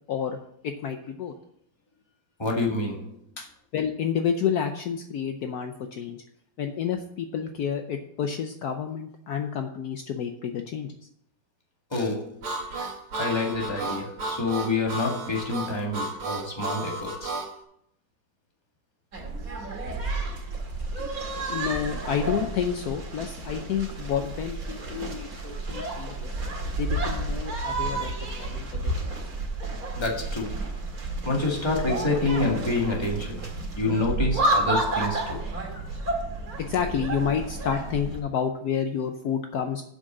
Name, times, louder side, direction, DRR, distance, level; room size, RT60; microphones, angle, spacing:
voice 1, 0.6-1.3 3.4-6.2 6.6-10.9 21.5-26.3 26.8-29.0 36.6-39.8, left 7 dB, 75° left, 6 dB, 0.9 m, -30 dB
voice 2, 2.4-3.2 11.9-12.5 13.2-17.4 30.0-30.6 31.2-33.4 33.8-35.4, left 3 dB, 15° left, -1 dB, 1.6 m, -27 dB
Harmonica, 12.4-17.5, right 2 dB, 75° right, 2.6 m, -33 dB
sound 1, 19.1-38.2, right 2 dB, 40° right, 2.3 m, -31 dB
7.7 x 6.4 x 7.4 m, 0.72 s
omnidirectional pair, 2.4 m